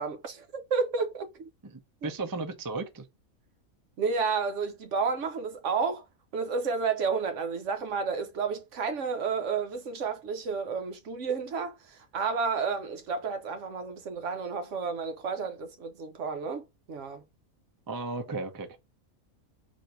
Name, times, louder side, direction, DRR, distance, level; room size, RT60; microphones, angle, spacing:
voice 1, 0.0-1.5 2.0-2.1 4.0-6.0 6.3-17.2, right 5 dB, 65° right, 1.0 m, -31 dB
voice 2, 2.0-3.1 17.9-18.8, right 3 dB, 30° right, 0.4 m, -34 dB
4.1 x 2.6 x 4.5 m
omnidirectional pair, 1.4 m